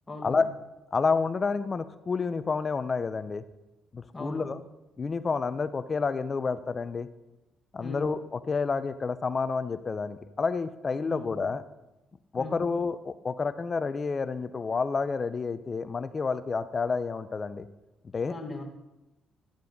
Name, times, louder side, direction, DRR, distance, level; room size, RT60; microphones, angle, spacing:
voice 1, 0.1-0.5 4.1-4.6 7.8-8.2 11.0-11.4 12.4-12.7 18.3-18.6, left 2 dB, 20° left, 1 dB, 1.9 m, -39 dB
voice 2, 0.9-3.4 3.9-4.6 5.0-7.1 7.7-8.2 8.5-11.6 12.3-17.7 18.1-18.3, left 4 dB, 35° left, 13 dB, 0.6 m, -29 dB
12.0 x 7.4 x 5.3 m, 0.99 s
cardioid pair, 90°, 0 cm